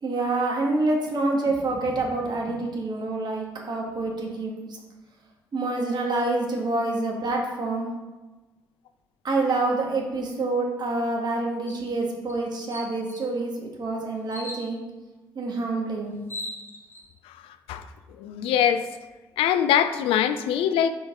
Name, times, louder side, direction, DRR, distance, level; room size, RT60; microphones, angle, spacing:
voice 1, 0.0-4.8 5.5-7.9 9.2-14.8 15.3-16.1, right 2 dB, 50° right, 1.7 m, -27 dB
sound 1, 11.7-11.9 12.3-12.4 12.7-13.3 14.3-14.7 15.8-15.9 16.1-17.0, left 1 dB, 25° left, 1.8 m, -38 dB
voice 2, 18.2-18.9 19.4-20.9, left 9 dB, 70° left, 0.4 m, -22 dB
6.1 x 5.0 x 3.7 m
hypercardioid pair, 40°, 10 cm